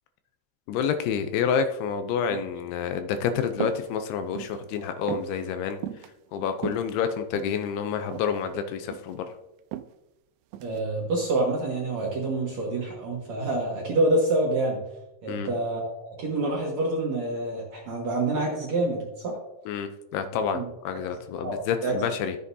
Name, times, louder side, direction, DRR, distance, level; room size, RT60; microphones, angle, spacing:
voice 1, 0.7-5.8 6.3-9.2 15.3-15.5 19.7-22.4, left 7 dB, 80° left, 8 dB, 2.5 m, -28 dB
sound 1, 3.5-3.9 4.2-4.6 5.1-5.3 5.8-6.1 6.5-7.6 8.1-8.4 8.7-9.2 9.7-9.9 10.5-10.8, right 11 dB, 90° right, 2.1 m, -35 dB
voice 2, 10.6-14.8 15.2-19.4 20.5-20.7 21.3-21.9, right 2 dB, 60° right, -2 dB, 1.9 m, -27 dB
13.5 x 7.5 x 2.7 m, 0.92 s
omnidirectional pair, 4.8 m